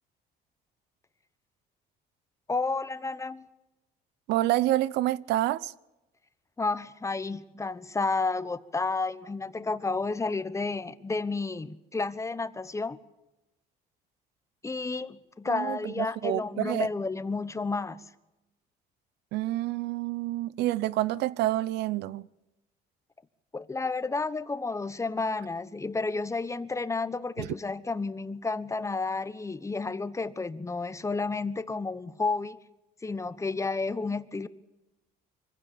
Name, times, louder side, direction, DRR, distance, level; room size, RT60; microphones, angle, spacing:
voice 1, 2.5-3.5 6.6-13.0 14.6-18.0 23.5-32.6 33.0-34.5, left 3 dB, 15° left, 1.1 m, -31 dB
voice 2, 4.3-5.7 15.5-16.9 19.3-22.3 27.4-27.5, right 15 dB, 85° right, 0.8 m, -28 dB
24.5 x 15.5 x 8.7 m
cardioid pair, 110°, 17 cm